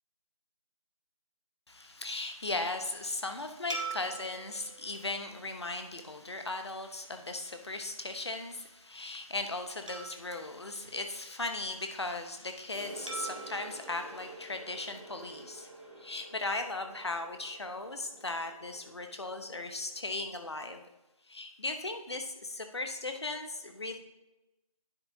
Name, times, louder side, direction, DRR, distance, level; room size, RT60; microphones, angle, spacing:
voice 1, 1.7-15.7 16.0-20.8 21.3-24.0, left 2 dB, 50° left, 6 dB, 0.9 m, -37 dB
sound 1, 3.7-6.4 7.0-7.1 9.9-11.7 13.1-15.4, right 4 dB, 60° right, 1.5 m, -45 dB
sound 2, 12.7-20.2, right 1 dB, 5° right, 2.7 m, -50 dB
10.0 x 6.8 x 2.7 m, 0.98 s
figure-of-eight pair, 165°, 18 cm